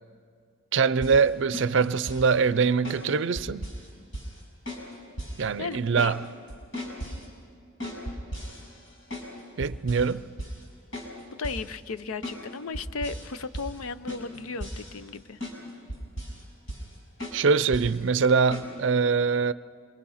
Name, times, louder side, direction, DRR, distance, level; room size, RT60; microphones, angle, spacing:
voice 1, 0.7-3.7 5.4-6.2 9.6-10.2 17.3-19.5, right 5 dB, 60° right, 0.5 m, -23 dB
sound 1, 1.0-1.2 1.5-2.3 2.8-3.0 3.4-4.4 4.7-4.9 5.2-5.4 5.7-6.2 6.5-7.3 7.8-9.3 9.6-10.1 10.4-10.6 10.9-11.1 11.4-11.7 12.2-12.4 12.7-13.3 13.5-13.8 14.1-15.2 15.4-15.6 15.9-16.4 16.7-16.9 17.2-17.4 17.7-18.0 18.5-18.7, equal, 65° left, 6.1 m, -36 dB
voice 2, 5.6-6.1 11.0-11.1 11.4-15.4, left 4 dB, 90° left, 0.6 m, -35 dB
27.5 x 22.5 x 5.6 m
head